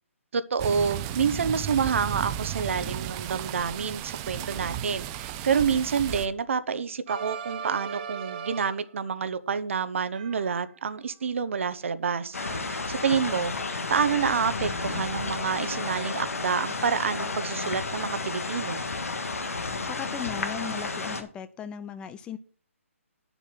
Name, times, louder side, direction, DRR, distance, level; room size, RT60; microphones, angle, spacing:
voice 1, 0.3-18.8, right 6 dB, 60° right, 14 dB, 1.0 m, -28 dB
sound 1, 0.6-6.3, right 11 dB, 25° right, 0.7 m, -34 dB
sound 2, 7.1-9.0 10.1-11.0 12.4-13.3 14.6-15.5, right 7 dB, 40° right, 1.3 m, -40 dB
sound 3, 12.3-21.2, left 3 dB, 80° left, 1.9 m, -32 dB
voice 2, 19.8-22.4, left 8 dB, 10° left, 13 dB, 0.5 m, -37 dB
9.9 x 7.0 x 6.0 m, 0.43 s
hypercardioid pair, 145°, 8 cm